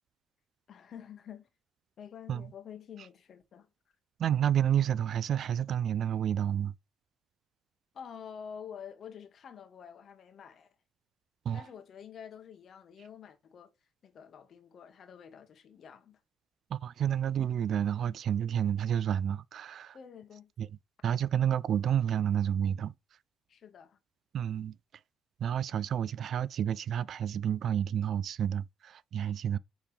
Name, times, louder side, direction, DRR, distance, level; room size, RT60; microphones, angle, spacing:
voice 1, 0.7-1.5 2.0-3.7 7.9-10.7 11.5-13.7 14.0-16.2 19.9-20.5 23.5-24.0, left 7 dB, 55° left, 1.4 m, -48 dB
voice 2, 4.2-6.7 11.5-11.6 16.7-20.0 20.6-20.7 21.0-22.9 24.3-24.8 25.4-29.6, right 9 dB, 60° right, 0.3 m, -30 dB
8.5 x 3.5 x 3.4 m
hypercardioid pair, 60°, 0 cm